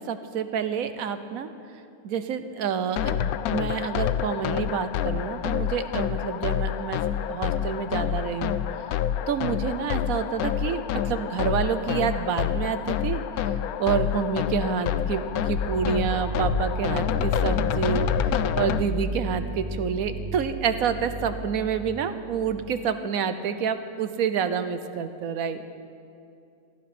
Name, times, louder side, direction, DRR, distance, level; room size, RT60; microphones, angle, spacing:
voice 1, 0.1-1.5 2.0-7.0 7.3-8.6 9.3-13.2 13.8-18.1 18.6-25.6, right 7 dB, 70° right, 10 dB, 1.2 m, -28 dB
sound 1, 3.0-18.8, left 10 dB, 80° left, 1.1 m, -27 dB
sound 2, 15.2-22.9, right 3 dB, 35° right, 1.1 m, -33 dB
18.0 x 12.0 x 6.0 m, 2.6 s
omnidirectional pair, 1.5 m